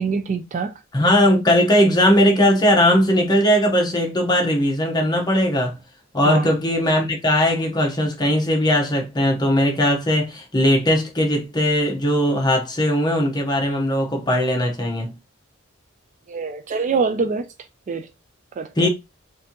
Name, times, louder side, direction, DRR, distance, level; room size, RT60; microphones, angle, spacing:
voice 1, 0.0-0.7 6.2-6.5 16.3-17.5 17.9-18.1 18.6-18.9, right 5 dB, 35° right, 0.3 m, -24 dB
voice 2, 0.9-5.8 6.1-15.1 18.8-18.9, equal, 20° left, 1.0 m, -19 dB
4.3 x 2.7 x 2.9 m
head